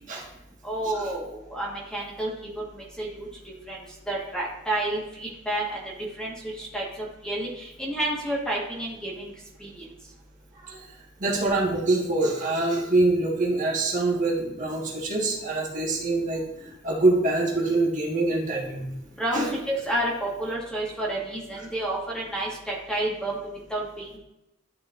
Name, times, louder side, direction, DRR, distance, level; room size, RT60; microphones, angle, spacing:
voice 1, 0.6-2.3 2.7-3.3 3.7-3.8 4.1-5.8 6.2-6.8 7.2-9.3 9.6-9.7 19.2-23.4 23.7-24.1, right 1 dB, 5° left, -3 dB, 1.4 m, -30 dB
voice 2, 11.2-18.9 19.3-19.5, right 2 dB, 40° right, -3 dB, 1.4 m, -25 dB
12.0 x 4.2 x 2.5 m, 0.88 s
head